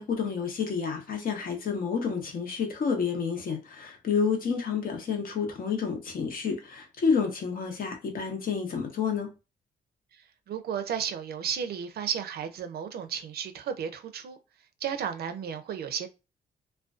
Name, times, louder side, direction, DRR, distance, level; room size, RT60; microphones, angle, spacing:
voice 1, 0.0-9.3, left 6 dB, 60° left, 0.8 m, -29 dB
voice 2, 10.5-14.4 14.8-16.1, right 8 dB, 70° right, 0.4 m, -33 dB
2.4 x 2.2 x 2.3 m
cardioid pair, 105°, 17 cm